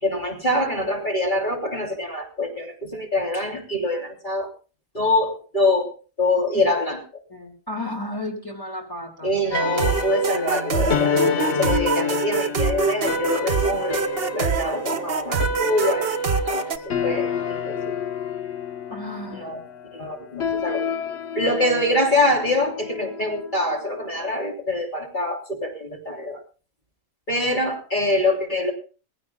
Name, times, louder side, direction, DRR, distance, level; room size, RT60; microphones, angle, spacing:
voice 1, 0.0-4.5 4.9-5.9 6.2-7.0 9.2-14.0 14.3-16.1 16.4-17.9 19.3-19.6 19.9-20.9 21.4-26.4 27.3-28.7, left 1 dB, 35° left, 0 dB, 3.4 m, -24 dB
voice 2, 7.3-9.3 18.9-19.6, left 1 dB, 15° left, 1 dB, 2.3 m, -33 dB
sound 1, 9.4-16.8, right 5 dB, 50° right, 1.1 m, -25 dB
sound 2, 9.5-24.0, left 4 dB, 55° left, 1.3 m, -28 dB
21.5 x 15.5 x 2.3 m, 0.35 s
omnidirectional pair, 1.4 m